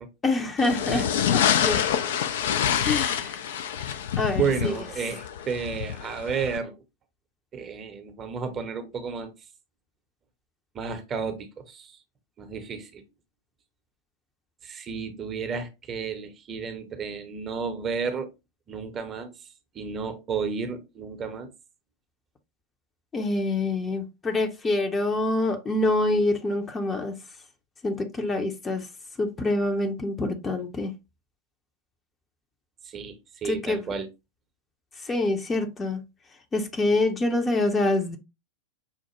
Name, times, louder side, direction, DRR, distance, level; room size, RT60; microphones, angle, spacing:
voice 1, 0.2-1.8 2.8-3.4 4.2-4.7 23.1-27.2 27.8-28.9 29.2-30.9 33.4-33.9 35.0-36.0 36.5-38.2, left 2 dB, 15° left, 0.7 m, -26 dB
sound 1, 0.6-6.6, left 9 dB, 55° left, 0.4 m, -26 dB
voice 2, 4.4-6.8 7.5-9.3 10.7-11.9 12.4-13.0 14.6-18.3 18.7-19.3 19.7-21.5 32.8-34.1, right 5 dB, 25° right, 0.7 m, -32 dB
5.7 x 2.1 x 3.0 m
figure-of-eight pair, 90°, 0 cm